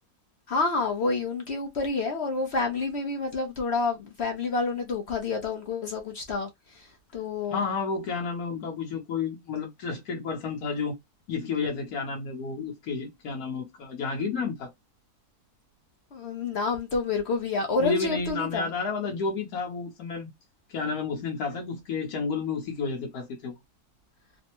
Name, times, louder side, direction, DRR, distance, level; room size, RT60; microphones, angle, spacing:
voice 1, 0.5-6.5 6.7-6.9 7.1-7.6 16.1-18.7, left 3 dB, 55° left, 0.8 m, -28 dB
voice 2, 7.5-11.0 11.3-14.7 17.8-20.3 20.7-23.6, left 4 dB, 70° left, 1.3 m, -31 dB
3.3 x 2.1 x 2.9 m
omnidirectional pair, 1.6 m